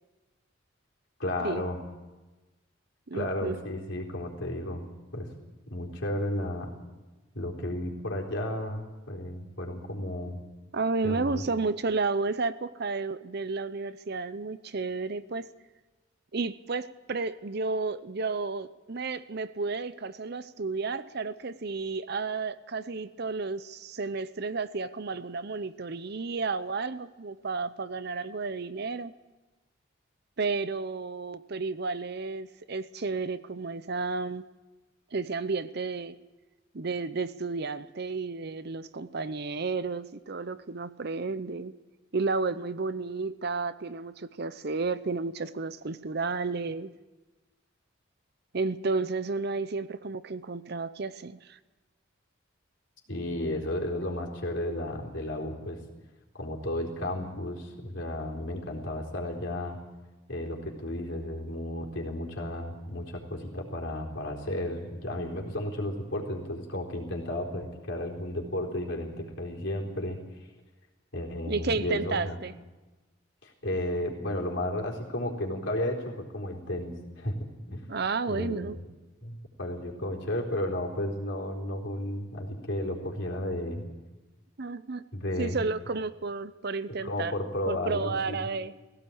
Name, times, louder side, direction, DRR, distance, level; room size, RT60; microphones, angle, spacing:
voice 1, 1.2-1.8 3.1-4.9 5.1-5.3 5.7-6.7 7.3-10.4 11.0-11.4 53.1-55.8 56.3-59.8 60.3-70.2 71.1-72.4 73.4-77.8 78.3-78.7 79.2-83.8 85.1-85.6 87.0-88.5, left 1 dB, 65° left, -1 dB, 4.1 m, -33 dB
voice 2, 3.1-3.6 10.7-15.5 16.3-29.1 30.4-34.4 35.1-36.2 36.7-41.7 42.1-46.9 48.5-51.6 71.5-72.5 77.9-78.8 84.6-85.1 85.4-87.3 87.7-88.7, right 4 dB, 50° right, 14 dB, 0.7 m, -32 dB
18.5 x 16.5 x 8.7 m, 1.2 s
head